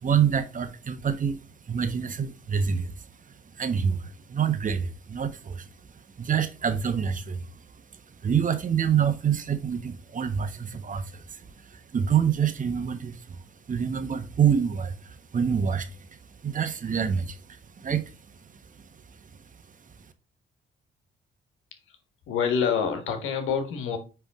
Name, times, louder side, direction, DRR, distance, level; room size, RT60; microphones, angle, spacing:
voice 1, 0.0-1.4 1.7-2.9 3.5-5.7 6.2-7.4 8.2-13.4 13.7-18.0, right 7 dB, 40° right, 1.1 m, -27 dB
voice 2, 22.3-24.0, left 6 dB, 85° left, 1.6 m, -26 dB
9.2 x 3.6 x 3.6 m
cardioid pair, 90°, 20 cm